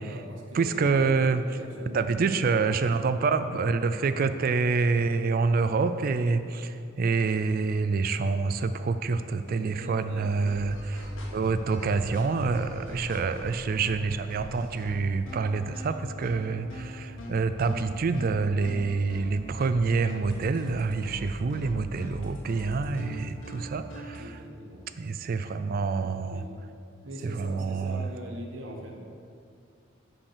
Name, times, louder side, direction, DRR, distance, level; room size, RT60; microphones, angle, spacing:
voice 1, 0.0-2.8 9.7-10.6 12.8-13.5 24.2-24.8 26.2-26.5 27.0-29.0, equal, 70° right, 0 dB, 1.2 m, -42 dB
voice 2, 0.5-1.4 1.9-24.4 25.0-26.4 27.2-28.1, right 4 dB, 45° right, 10 dB, 0.3 m, -27 dB
sound 1, 10.5-24.2, equal, 75° left, 1.9 m, -40 dB
8.5 x 5.3 x 6.7 m, 2.4 s
head